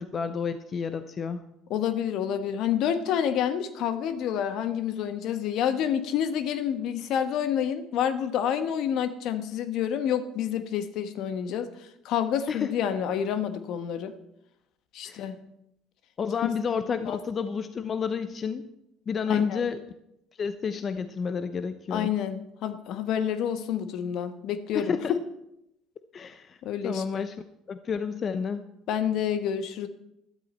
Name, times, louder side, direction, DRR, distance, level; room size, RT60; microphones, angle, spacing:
voice 1, 0.0-1.4 12.5-12.7 15.0-15.3 16.2-18.7 19.1-19.8 20.4-22.1 24.7-25.2 26.1-26.6 26.8-27.3 27.7-28.6, left 6 dB, 40° left, 11 dB, 0.8 m, -30 dB
voice 2, 1.7-14.1 14.9-15.4 16.4-16.5 17.0-17.2 19.3-19.6 21.9-24.9 26.6-27.2 28.9-29.9, left 9 dB, 65° left, 10 dB, 1.2 m, -28 dB
13.0 x 12.5 x 4.3 m, 0.82 s
hypercardioid pair, 70°, 0 cm